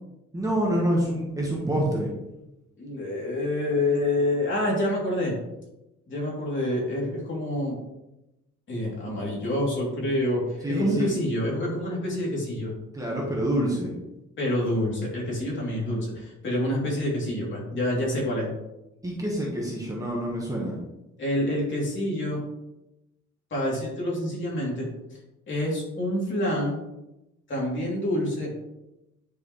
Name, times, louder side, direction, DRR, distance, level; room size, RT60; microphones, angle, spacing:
voice 1, 0.3-2.1 10.6-11.1 12.9-13.9 19.0-20.7, right 1 dB, 10° right, -4 dB, 1.3 m, -26 dB
voice 2, 2.8-5.3 6.1-7.8 8.7-12.7 14.4-18.5 21.2-22.4 23.5-24.9 25.5-26.8 27.5-28.5, left 1 dB, 40° left, -4 dB, 2.9 m, -27 dB
9.9 x 5.3 x 3.1 m, 0.93 s
wide cardioid pair, 175°, 29 cm